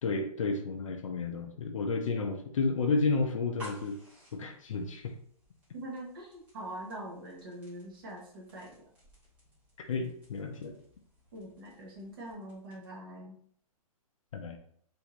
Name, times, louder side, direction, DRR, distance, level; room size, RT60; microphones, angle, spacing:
voice 1, 0.0-4.0 4.3-5.1 9.8-10.7 14.3-14.6, left 3 dB, 60° left, 4 dB, 0.5 m, -31 dB
sound 1, 3.4-13.1, equal, 10° right, 0.9 m, -55 dB
voice 2, 5.7-8.9 11.3-13.4, right 1 dB, 40° right, -1 dB, 1.0 m, -43 dB
3.4 x 2.6 x 2.9 m, 0.62 s
hypercardioid pair, 170°, 19 cm